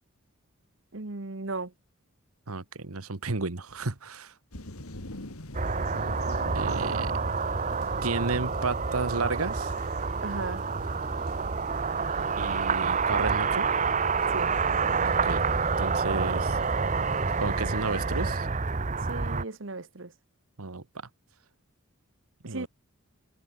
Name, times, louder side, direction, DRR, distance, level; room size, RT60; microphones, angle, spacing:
voice 1, 0.9-1.7 10.2-10.6 14.3-14.5 19.1-20.1 22.4-22.7, right 3 dB, 60° right, 1.3 m, -36 dB
voice 2, 2.5-4.3 6.5-7.1 8.0-9.7 12.4-13.7 15.0-15.4 15.8-16.6 17.4-18.5 20.6-20.8 22.4-22.7, right 3 dB, 85° right, 1.5 m, -32 dB
sound 1, 4.5-18.3, left 1 dB, 90° left, 3.2 m, -45 dB
sound 2, 5.5-19.4, right 5 dB, 35° right, 0.8 m, -28 dB
head